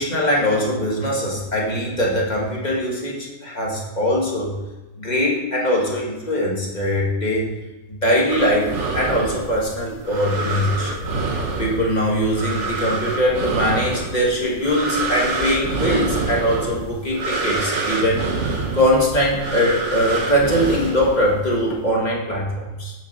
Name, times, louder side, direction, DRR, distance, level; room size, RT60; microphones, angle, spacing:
voice 1, 0.0-4.6 5.0-7.5 7.9-10.9 11.6-18.2 18.7-22.9, equal, 35° left, -4 dB, 2.0 m, -21 dB
sound 1, 8.3-21.6, right 3 dB, 60° right, 1.4 m, -27 dB
8.1 x 6.4 x 5.6 m, 1.1 s
omnidirectional pair, 1.4 m